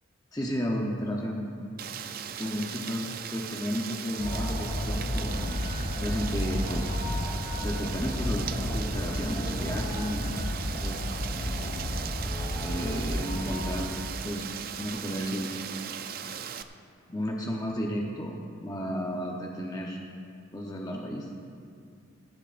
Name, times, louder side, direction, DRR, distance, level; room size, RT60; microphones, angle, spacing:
voice 1, 0.3-1.5 2.4-5.3 6.0-6.9 7.6-10.3 10.8-11.1 12.6-13.9 14.2-14.5 14.8-15.6 17.1-20.0 20.5-21.3, equal, 20° left, -1 dB, 0.8 m, -33 dB
Rain, 1.8-16.6, right 8 dB, 45° right, 0.4 m, -38 dB
sound 1, 4.2-13.8, left 1 dB, 45° left, 1.7 m, -32 dB
16.0 x 16.0 x 2.5 m, 2.4 s
head